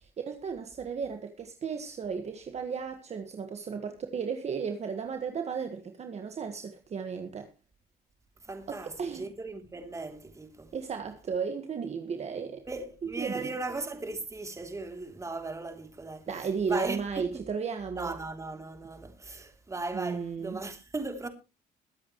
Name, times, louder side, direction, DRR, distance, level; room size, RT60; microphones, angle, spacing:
voice 1, 0.0-7.5 8.7-9.3 10.7-12.7 13.2-13.5 16.3-18.2 19.9-20.6, right 6 dB, 40° right, 1.7 m, -34 dB
voice 2, 8.4-10.7 12.7-16.3 16.7-17.4 18.0-21.3, right 3 dB, 20° right, 3.1 m, -37 dB
22.0 x 8.5 x 3.2 m
cardioid pair, 110°, 17 cm